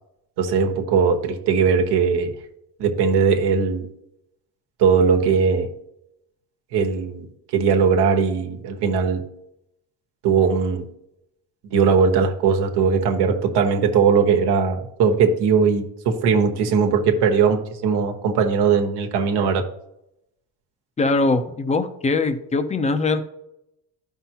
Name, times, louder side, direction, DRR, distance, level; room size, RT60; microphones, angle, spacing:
voice 1, 0.4-2.3 2.8-3.9 4.8-5.7 6.7-7.3 7.5-9.2 10.2-10.9 11.6-19.6, right 6 dB, 75° right, 4 dB, 1.3 m, -19 dB
voice 2, 21.0-23.2, left 3 dB, 15° left, 9 dB, 0.6 m, -21 dB
12.5 x 5.6 x 2.9 m, 0.82 s
cardioid pair, 140°, 41 cm